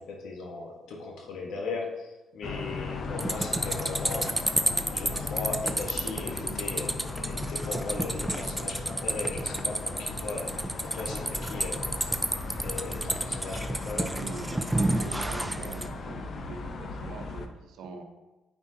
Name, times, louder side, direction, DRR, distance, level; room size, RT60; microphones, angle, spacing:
voice 1, 0.0-4.4 4.9-10.6 10.8-12.1 12.6-14.2, left 3 dB, 75° left, 0 dB, 1.3 m, -38 dB
sound 1, 2.4-17.5, left 3 dB, 50° left, 0.6 m, -37 dB
sound 2, 3.2-15.9, right 1 dB, 10° right, 0.4 m, -31 dB
voice 2, 14.1-18.0, right 4 dB, 85° right, 4 dB, 0.8 m, -42 dB
9.4 x 4.3 x 2.8 m, 1.1 s
cardioid pair, 90°, 0 cm